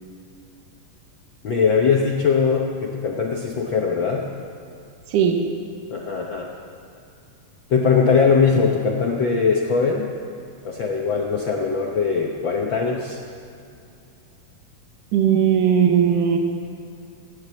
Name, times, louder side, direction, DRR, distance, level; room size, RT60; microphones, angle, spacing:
voice 1, 1.4-4.3 5.9-6.5 7.7-10.1 10.6-13.2, left 5 dB, 80° left, 0 dB, 1.0 m, -21 dB
voice 2, 5.1-5.4 15.1-16.4, right 8 dB, 80° right, 3 dB, 2.7 m, -18 dB
15.5 x 10.5 x 8.5 m, 2.5 s
omnidirectional pair, 3.7 m